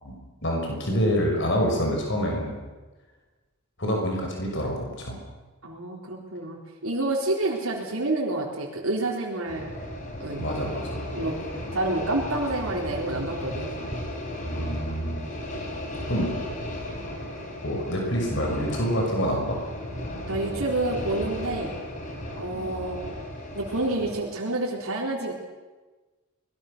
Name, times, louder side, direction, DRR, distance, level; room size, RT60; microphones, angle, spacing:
voice 1, 0.0-2.5 3.8-5.2 10.3-11.1 14.4-15.2 16.1-16.3 17.6-19.6 22.5-22.7, equal, 55° left, 0 dB, 6.1 m, -27 dB
voice 2, 5.6-9.7 10.2-10.5 11.1-11.4 11.7-13.7 20.3-21.7 22.3-23.0 23.6-25.3, right 2 dB, 80° right, -2 dB, 3.9 m, -28 dB
sound 1, 9.5-24.2, left 1 dB, 35° left, 4.0 m, -35 dB
24.5 x 21.0 x 6.8 m, 1.3 s
head